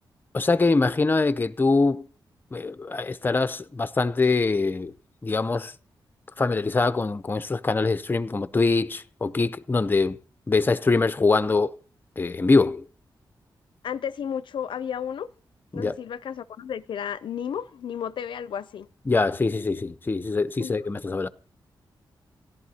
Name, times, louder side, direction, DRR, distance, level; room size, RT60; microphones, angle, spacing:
voice 1, 0.3-2.1 2.5-4.9 5.2-5.7 6.4-10.2 10.5-11.7 12.2-12.8 15.7-16.0 19.1-21.3, left 3 dB, 25° left, 0.5 m, -23 dB
voice 2, 13.8-15.3 15.7-18.9 20.6-20.7, left 8 dB, 80° left, 0.4 m, -33 dB
17.0 x 11.0 x 2.8 m
wide cardioid pair, 100°, 8 cm